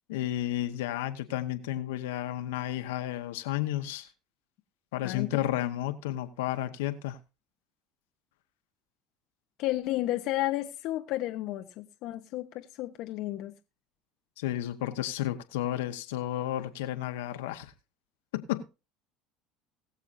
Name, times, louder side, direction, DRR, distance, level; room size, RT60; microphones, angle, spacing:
voice 1, 0.1-4.1 4.9-7.2 14.4-17.7 18.3-18.7, left 13 dB, 85° left, 1.1 m, -32 dB
voice 2, 9.6-13.5, left 16 dB, 65° left, 0.9 m, -32 dB
21.0 x 7.1 x 2.6 m
supercardioid pair, 85°, 0 cm